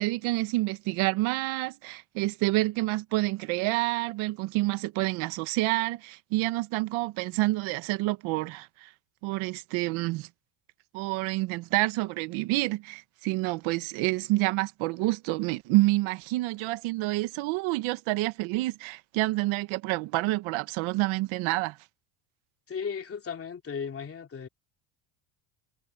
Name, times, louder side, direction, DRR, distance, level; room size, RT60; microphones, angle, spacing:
voice 1, 0.0-8.9 9.2-10.3 10.9-21.8, right 20 dB, 75° right, 1.6 m, -28 dB
voice 2, 22.7-24.5, left 6 dB, 30° left, 3.2 m, -35 dB
cardioid pair, 115°, 48 cm